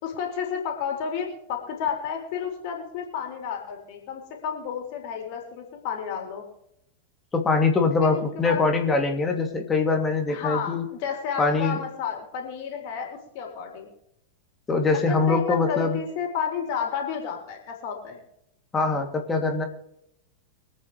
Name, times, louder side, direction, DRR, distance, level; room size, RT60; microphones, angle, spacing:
voice 1, 0.0-6.5 8.0-8.6 10.3-13.9 14.9-18.2, left 7 dB, 45° left, 2 dB, 3.7 m, -31 dB
voice 2, 7.3-10.8 11.4-11.8 14.7-16.0 18.7-19.6, left 3 dB, 15° left, 3 dB, 2.7 m, -23 dB
25.0 x 8.9 x 3.3 m, 0.79 s
figure-of-eight pair, 90°, 0 cm